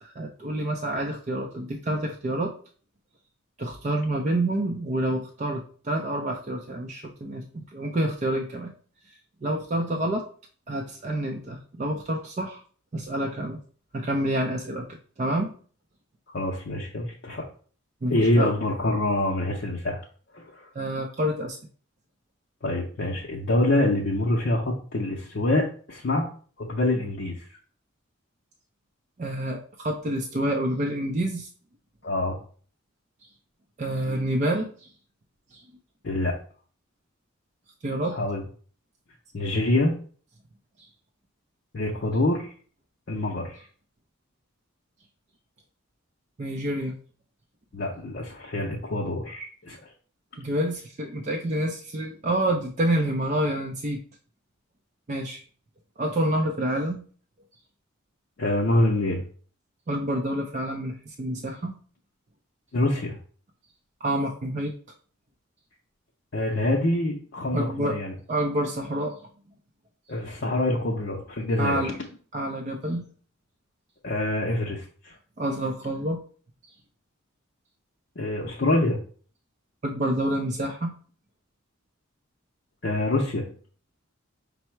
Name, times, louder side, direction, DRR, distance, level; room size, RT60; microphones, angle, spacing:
voice 1, 0.0-2.5 3.6-8.7 9.1-10.2 10.7-12.6 12.9-13.6 13.9-14.9 15.2-15.5 18.0-18.5 20.7-21.6 29.2-31.5 33.8-34.9 35.5-35.6 37.8-38.2 46.4-47.0 50.4-54.0 55.1-55.4 56.0-57.0 59.9-61.7 64.0-64.7 67.5-68.0 68.3-69.2 71.6-72.0 72.3-73.0 75.4-76.2 79.8-80.9, right 1 dB, 35° right, 1 dB, 0.4 m, -28 dB
voice 2, 16.3-17.4 18.1-20.0 20.3-20.7 22.6-26.2 26.6-27.5 32.0-32.4 36.0-36.3 38.1-38.4 39.3-40.0 41.7-42.5 43.1-43.6 47.7-49.8 58.4-59.2 62.7-63.2 66.3-68.1 70.1-71.9 74.0-75.1 78.2-79.0 82.8-83.5, left 1 dB, 55° left, -2 dB, 0.6 m, -25 dB
5.4 x 2.0 x 4.4 m, 0.44 s
head